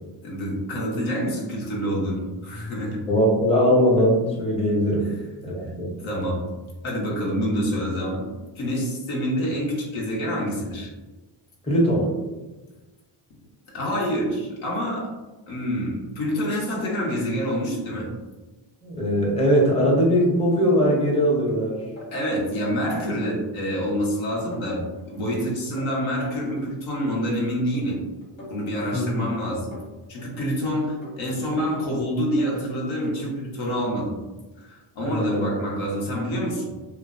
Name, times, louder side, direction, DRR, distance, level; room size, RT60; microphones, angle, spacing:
voice 1, 0.2-3.0 5.0-5.1 6.0-6.5 6.8-8.2 8.5-10.9 13.7-15.1 15.5-18.1 22.1-28.0 28.5-29.7 30.1-34.2 34.6-36.9, equal, 70° left, -4 dB, 0.9 m, -27 dB
voice 2, 3.1-5.1 5.4-5.9 11.7-12.1 18.8-21.8 28.9-29.3 35.0-35.5, equal, 10° left, -4 dB, 0.7 m, -21 dB
sound 1, 20.2-21.5 21.8-22.8 23.1-25.4 25.6-26.6 26.9-28.0 28.2-30.5 30.8-31.9 32.2-33.3 33.5-33.9, left 2 dB, 85° left, 1.2 m, -43 dB
2.5 x 2.1 x 2.4 m, 1.2 s
cardioid pair, 70°, 49 cm